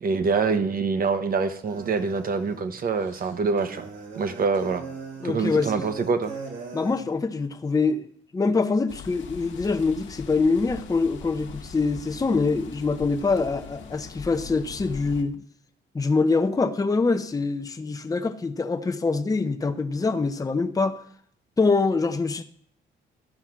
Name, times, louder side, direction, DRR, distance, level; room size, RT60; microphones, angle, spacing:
voice 1, 0.0-3.9 4.2-4.8 5.2-6.3, right 4 dB, 45° right, 1.1 m, -25 dB
sound 1, 1.6-7.0, right 5 dB, 70° right, 3.1 m, -40 dB
voice 2, 5.2-5.9 6.7-8.0 8.3-15.4 15.9-21.0 21.6-22.4, left 4 dB, 20° left, 0.7 m, -24 dB
sound 2, 8.9-15.2, left 6 dB, 70° left, 1.2 m, -42 dB
13.0 x 4.9 x 6.0 m
cardioid pair, 90°, 20 cm